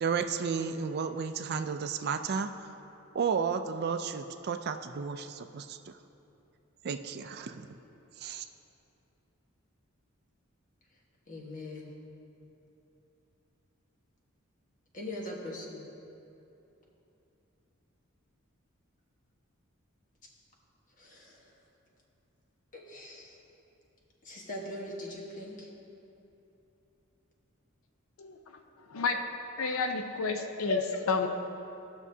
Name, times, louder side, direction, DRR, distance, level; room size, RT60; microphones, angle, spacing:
voice 1, 0.0-2.5 3.1-5.8 6.8-7.7 8.2-8.4, right 6 dB, 50° right, 8 dB, 0.4 m, -32 dB
voice 2, 11.3-11.9 14.9-15.9 21.0-21.4 22.7-23.4 24.2-25.7, left 1 dB, 40° left, -2 dB, 1.3 m, -41 dB
voice 3, 28.9-29.3 29.6-31.3, left 4 dB, 85° left, 5 dB, 0.6 m, -30 dB
16.5 x 6.1 x 2.7 m, 2.9 s
head